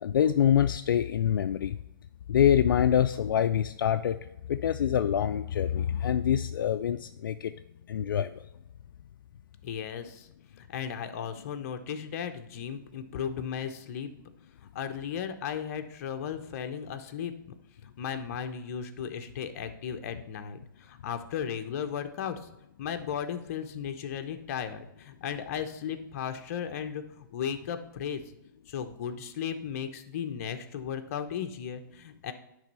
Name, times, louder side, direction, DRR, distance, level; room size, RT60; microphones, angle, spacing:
voice 1, 0.0-1.8 2.3-4.2 4.5-7.5 7.9-8.3, left 9 dB, 70° left, 9 dB, 0.4 m, -25 dB
voice 2, 9.6-10.3 10.6-14.1 14.7-17.3 17.8-22.4 22.8-28.2 28.7-32.3, left 8 dB, 40° left, 7 dB, 0.8 m, -35 dB
10.5 x 3.4 x 5.5 m, 0.88 s
hypercardioid pair, 150°, 12 cm